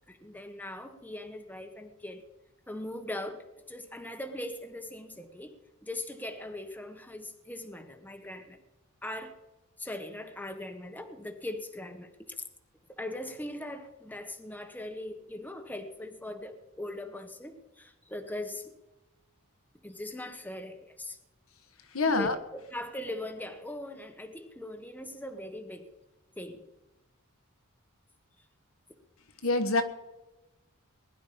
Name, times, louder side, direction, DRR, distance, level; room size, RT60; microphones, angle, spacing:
voice 1, 0.1-2.2 2.7-5.5 5.8-8.6 9.0-9.3 9.8-12.1 13.0-18.7 19.8-21.2 22.1-22.3 22.7-25.9 26.4-26.6, left 1 dB, 10° left, 6 dB, 1.3 m, -40 dB
voice 2, 21.9-22.4 29.4-29.8, left 3 dB, 75° left, 8 dB, 1.6 m, -25 dB
20.0 x 11.5 x 5.2 m, 0.99 s
head